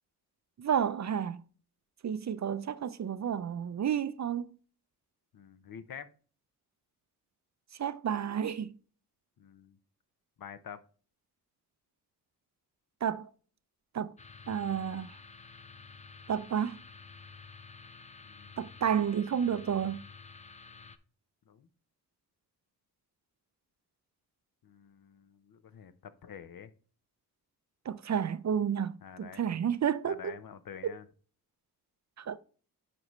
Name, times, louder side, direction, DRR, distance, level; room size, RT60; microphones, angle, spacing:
voice 1, 0.6-1.4 2.0-4.4 7.8-8.8 13.0-13.3 13.9-14.1 14.5-15.2 16.3-16.8 18.6-20.0 27.9-30.3 30.8-30.9 32.2-32.4, right 8 dB, 45° right, 0.5 m, -31 dB
voice 2, 5.3-6.1 9.4-9.8 10.4-10.8 18.2-18.5 21.5-21.7 24.6-26.7 29.0-29.4 30.0-31.0, left 8 dB, 55° left, 0.8 m, -48 dB
sound 1, 14.2-21.0, left 4 dB, 20° left, 0.6 m, -51 dB
9.8 x 4.2 x 3.1 m
cardioid pair, 70°, 40 cm